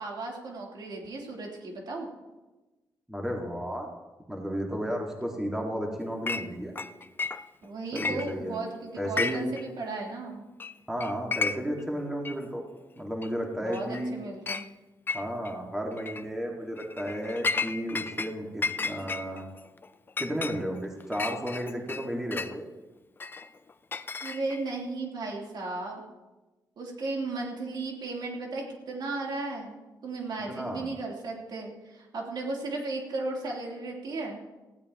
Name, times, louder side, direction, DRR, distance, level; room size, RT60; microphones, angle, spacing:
voice 1, 0.0-2.1 7.6-10.4 13.6-14.7 24.2-26.0 26.8-34.4, right 3 dB, 65° right, -1 dB, 3.3 m, -35 dB
voice 2, 3.1-3.9 4.3-6.7 7.9-8.6 9.0-9.5 10.9-12.6 13.0-14.1 15.1-19.4 20.2-22.6 30.5-30.9, equal, 5° right, 0 dB, 2.0 m, -33 dB
Chink clink, 6.3-6.5 6.8-7.6 7.9-8.7 9.0-9.6 9.9-10.0 10.6-10.7 11.0-11.8 12.2-12.3 13.2-13.3 13.7-14.1 14.5-14.7 15.1-15.5 16.0-16.2 16.8-18.3 18.6-22.6 23.2-24.7, left 4 dB, 25° left, 0.5 m, -33 dB
19.0 x 15.5 x 3.0 m, 1.1 s
wide cardioid pair, 135°, 8 cm